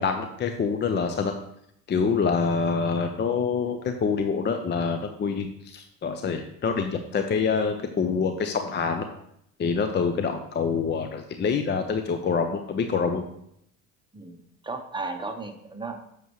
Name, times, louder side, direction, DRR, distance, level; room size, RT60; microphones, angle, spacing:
voice 1, 0.0-1.4 1.9-9.1 9.6-13.2, left 5 dB, 25° left, 6 dB, 0.6 m, -26 dB
voice 2, 14.1-16.0, right 3 dB, 10° right, 4 dB, 1.0 m, -35 dB
7.7 x 6.4 x 3.1 m, 0.74 s
hypercardioid pair, 70°, 42 cm